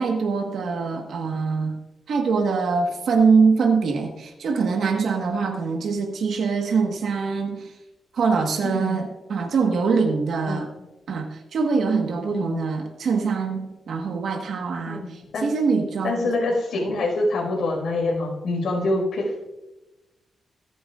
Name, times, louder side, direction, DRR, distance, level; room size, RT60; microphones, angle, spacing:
voice 1, 0.0-1.8 2.1-7.7 8.1-10.7 11.1-16.3, right 5 dB, 65° right, 3 dB, 1.4 m, -23 dB
voice 2, 8.6-9.0 10.5-10.6 12.3-12.6 14.8-15.5 16.0-19.3, left 2 dB, 65° left, -1 dB, 5.0 m, -25 dB
25.5 x 9.2 x 2.5 m, 1.0 s
wide cardioid pair, 175°, 0 cm